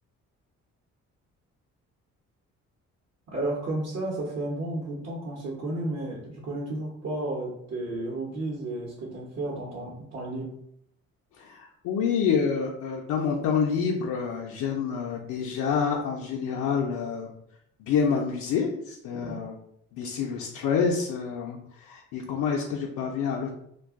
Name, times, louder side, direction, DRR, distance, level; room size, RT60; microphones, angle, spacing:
voice 1, 3.3-10.5 19.1-19.4, right 2 dB, 55° right, -4 dB, 0.9 m, -32 dB
voice 2, 11.4-17.3 17.8-19.6 19.9-23.5, left 6 dB, 85° left, 0 dB, 0.5 m, -28 dB
2.5 x 2.3 x 3.5 m, 0.73 s
cardioid pair, 90°, 30 cm